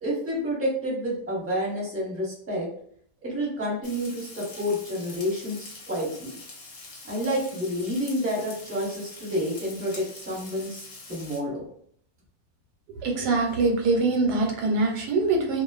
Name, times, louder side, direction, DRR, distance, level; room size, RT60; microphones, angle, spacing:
voice 1, 0.0-2.7 3.2-6.3 7.1-11.6, equal, 10° right, -7 dB, 0.9 m, -29 dB
Frying (food), 3.8-11.4, left 3 dB, 55° left, 0.8 m, -44 dB
voice 2, 12.9-15.6, right 3 dB, 90° right, 2 dB, 1.2 m, -23 dB
2.5 x 2.3 x 2.3 m, 0.64 s
omnidirectional pair, 1.7 m